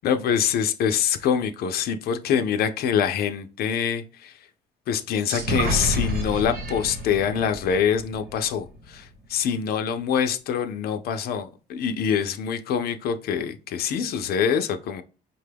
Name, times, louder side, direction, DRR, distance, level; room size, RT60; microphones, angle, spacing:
voice 1, 0.0-4.3 4.9-15.0, left 7 dB, 65° left, 0.5 m, -25 dB
sound 1, 5.3-9.0, right 1 dB, 65° right, 1.2 m, -29 dB
5.5 x 2.2 x 3.3 m
cardioid pair, 110°, 17 cm